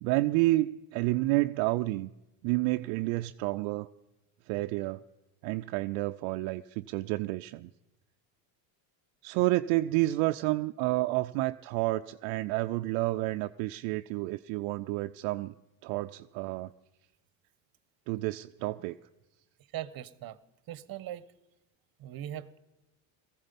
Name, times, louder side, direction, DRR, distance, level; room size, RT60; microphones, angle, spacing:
voice 1, 0.0-2.1 2.4-3.9 4.5-5.0 5.4-7.7 9.2-15.5 15.8-16.7 18.1-19.0, right 19 dB, 70° right, 7 dB, 0.6 m, -30 dB
voice 2, 19.7-20.4 20.7-21.3 22.0-22.6, right 12 dB, 45° right, 17 dB, 1.0 m, -40 dB
18.0 x 15.0 x 5.3 m, 0.97 s
supercardioid pair, 90°, 49 cm